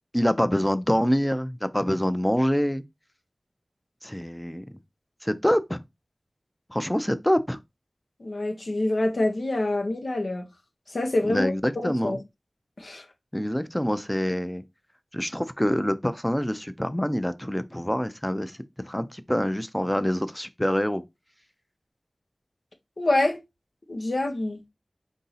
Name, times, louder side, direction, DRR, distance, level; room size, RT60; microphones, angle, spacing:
voice 1, 0.1-2.8 4.0-4.7 5.2-5.8 6.7-7.6 11.2-12.2 13.3-14.6 15.1-18.6 18.8-21.0, equal, 10° left, 0.5 m, -25 dB
voice 2, 8.2-10.5 10.9-12.2 12.8-13.0 23.0-23.4 23.9-24.6, left 2 dB, 80° left, 0.9 m, -26 dB
4.6 x 2.7 x 4.0 m
wide cardioid pair, 50°, 0 cm